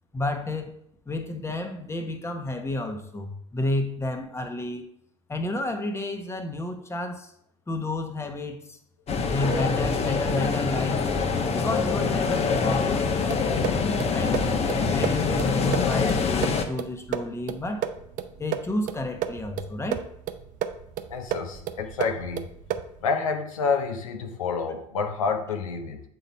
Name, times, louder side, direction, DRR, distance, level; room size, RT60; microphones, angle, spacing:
voice 1, 0.1-0.8 1.1-4.9 5.3-7.3 7.7-8.8 9.3-11.0 11.5-14.4 14.9-17.9 18.4-20.1, left 2 dB, 15° left, 5 dB, 1.1 m, -31 dB
sound 1, 9.1-16.6, left 5 dB, 40° left, 1.1 m, -25 dB
sound 2, 13.3-23.0, right 10 dB, 50° right, 0.7 m, -33 dB
voice 2, 21.1-22.5 23.0-26.0, left 5 dB, 80° left, 5 dB, 0.8 m, -28 dB
7.9 x 4.1 x 4.3 m, 0.73 s
hypercardioid pair, 70°, 17 cm